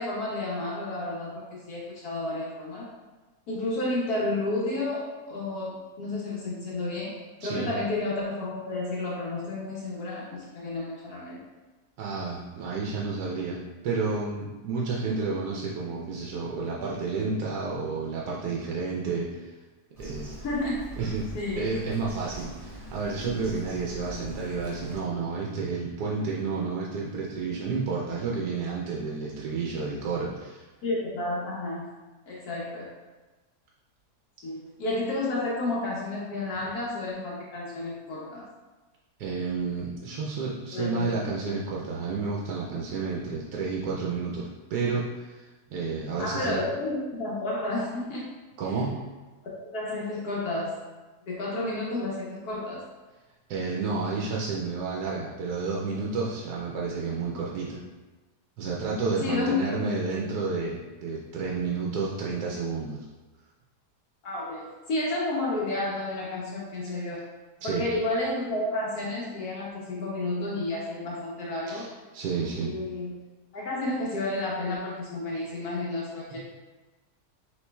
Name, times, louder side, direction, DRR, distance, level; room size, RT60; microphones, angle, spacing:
voice 1, 0.0-2.9 3.5-11.4 20.4-20.9 21.3-21.7 30.8-31.9 32.3-32.9 34.4-38.4 40.7-41.3 46.2-48.3 48.6-48.8 49.6-50.8 51.3-52.8 59.2-59.7 64.2-67.2 67.6-71.9 72.6-73.1 73.5-76.4, left 2 dB, 70° left, -5 dB, 1.3 m, -31 dB
voice 2, 12.0-19.5 20.0-20.3 21.0-30.6 36.6-36.7 39.2-46.6 48.6-49.0 53.5-57.8 58.6-63.1 67.6-67.8 71.7-71.9 72.1-72.7 76.3-76.4, right 4 dB, 80° right, -3 dB, 1.1 m, -31 dB
Bird vocalization bird call bird song, 20.0-25.0, equal, 20° right, 0.5 m, -42 dB
6.1 x 3.1 x 2.2 m, 1.2 s
omnidirectional pair, 1.7 m